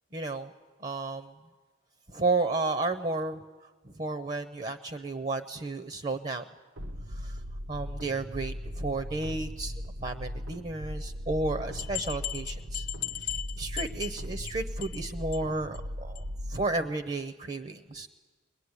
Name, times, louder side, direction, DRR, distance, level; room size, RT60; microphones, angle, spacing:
voice 1, 0.1-0.5 0.8-1.3 2.1-6.4 7.1-7.4 7.7-12.9 13.2-18.1, right 3 dB, 35° right, 8 dB, 0.8 m, -33 dB
sound 1, 6.8-16.6, equal, 75° right, 1.1 m, -38 dB
sound 2, 11.3-11.4 11.8-14.5 14.8-15.1 15.3-15.4 15.7-15.8 16.2-16.3, left 12 dB, 40° left, 0.7 m, -36 dB
23.5 x 21.0 x 9.8 m, 1.4 s
head